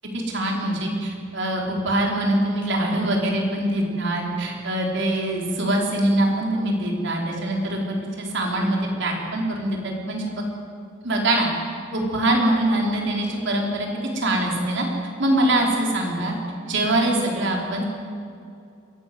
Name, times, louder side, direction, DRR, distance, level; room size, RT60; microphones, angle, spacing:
voice 1, 0.1-10.4 11.0-11.5 11.9-13.9 14.1-14.8 15.2-16.3 16.6-17.8, right 1 dB, 65° right, -1 dB, 4.5 m, -23 dB
22.5 x 17.0 x 7.9 m, 2.5 s
head